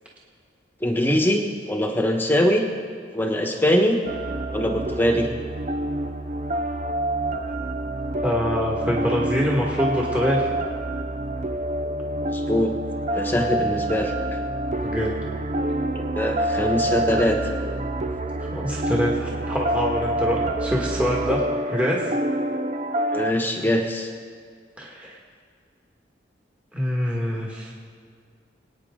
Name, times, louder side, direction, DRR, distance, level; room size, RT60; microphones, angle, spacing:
voice 1, 0.8-2.6 3.1-4.0 4.5-5.3 12.2-12.8 13.1-14.1 16.2-17.4 23.1-24.1, equal, 10° left, 2 dB, 1.3 m, -22 dB
sound 1, 4.1-23.3, right 1 dB, 40° right, 0.6 m, -27 dB
voice 2, 8.2-10.5 14.8-15.1 18.4-21.4 21.7-22.0 24.8-25.2 26.7-27.7, equal, 10° right, -4 dB, 1.7 m, -25 dB
24.0 x 9.3 x 3.8 m, 2.1 s
head